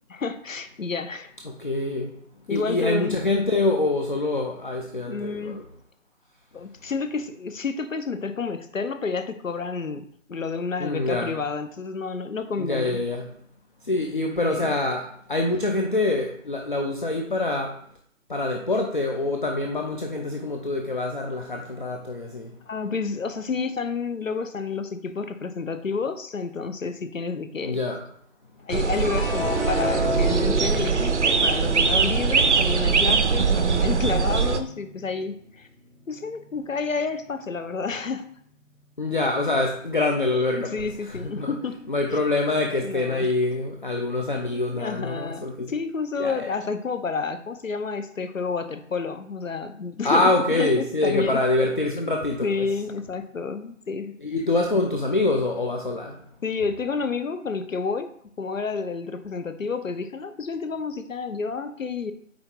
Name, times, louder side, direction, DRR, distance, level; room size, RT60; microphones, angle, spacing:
voice 1, 0.1-1.3 2.5-3.2 5.0-5.6 6.5-13.1 14.5-14.8 22.7-27.8 28.6-35.7 36.1-38.3 40.6-41.8 42.8-43.3 44.5-51.4 52.4-54.1 56.4-58.1 58.4-62.1, left 4 dB, 75° left, 10 dB, 0.8 m, -30 dB
voice 2, 1.5-2.2 2.5-5.6 10.8-11.3 12.6-13.3 13.8-17.8 18.3-22.5 27.6-28.0 39.0-41.5 41.9-45.7 46.2-46.5 50.0-52.7 54.2-56.2, left 2 dB, 40° left, 2 dB, 0.6 m, -25 dB
sound 1, 28.7-34.6, right 5 dB, 60° right, 0.6 m, -22 dB
sound 2, 29.0-35.5 35.9-36.6, left 1 dB, 10° left, 0.8 m, -32 dB
8.6 x 3.0 x 3.8 m, 0.63 s
figure-of-eight pair, 150°, 40 cm